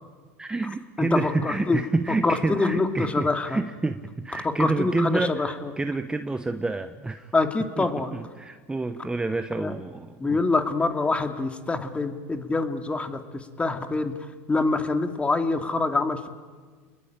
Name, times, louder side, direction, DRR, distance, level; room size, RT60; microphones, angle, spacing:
voice 1, 0.4-7.3 7.8-10.4, right 3 dB, 10° right, 9 dB, 1.1 m, -28 dB
voice 2, 1.0-1.8 2.2-3.6 4.6-5.7 7.3-8.1 9.6-9.8 10.2-14.1 14.5-16.3, left 3 dB, 15° left, 6 dB, 2.6 m, -25 dB
29.5 x 21.0 x 9.0 m, 1.5 s
hypercardioid pair, 100°, 7 cm